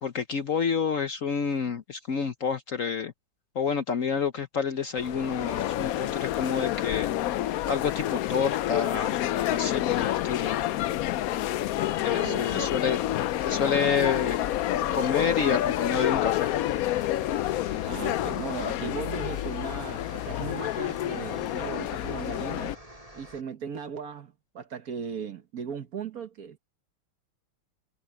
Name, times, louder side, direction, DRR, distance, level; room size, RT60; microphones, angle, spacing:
voice 1, 0.0-3.1 3.5-7.4 7.6-10.6 12.0-13.0 13.4-14.4 14.9-16.6, left 6 dB, 55° left, 1.0 m, -29 dB
sound 1, 5.0-22.7, left 13 dB, 80° left, 0.8 m, -29 dB
voice 2, 12.0-12.7 17.8-22.7 23.1-26.6, right 7 dB, 50° right, 1.5 m, -37 dB
sound 2, 13.3-23.4, right 1 dB, 15° right, 6.1 m, -49 dB
omnidirectional pair, 2.1 m